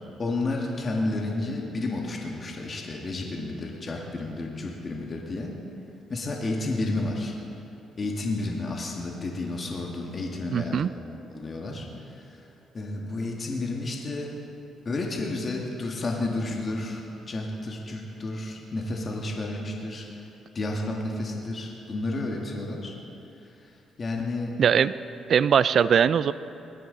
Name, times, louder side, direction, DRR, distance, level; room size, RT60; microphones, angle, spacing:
voice 1, 0.2-5.5 6.1-7.3 8.0-10.8 11.3-12.4 12.7-14.3 14.8-20.1 20.5-22.9 23.4-23.7 24.0-24.5, left 2 dB, 40° left, 0 dB, 1.7 m, -31 dB
voice 2, 10.5-10.9 24.6-25.0 25.3-26.3, right 7 dB, 60° right, 16 dB, 0.3 m, -20 dB
19.0 x 12.0 x 3.9 m, 2.8 s
cardioid pair, 90°, 0 cm